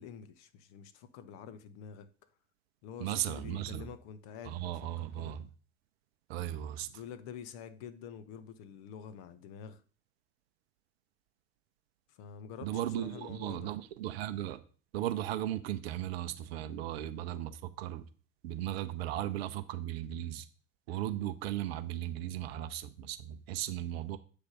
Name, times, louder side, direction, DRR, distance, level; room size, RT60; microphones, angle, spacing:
voice 1, 0.0-2.1 2.8-5.4 6.9-9.8 12.1-13.7, left 7 dB, 40° left, 0.7 m, -47 dB
voice 2, 3.0-3.9 4.5-5.5 6.3-6.9 12.6-14.6 14.9-18.0 18.4-20.5 20.9-24.2, right 12 dB, 50° right, 0.7 m, -36 dB
7.9 x 3.3 x 5.5 m
figure-of-eight pair, 80°, 41 cm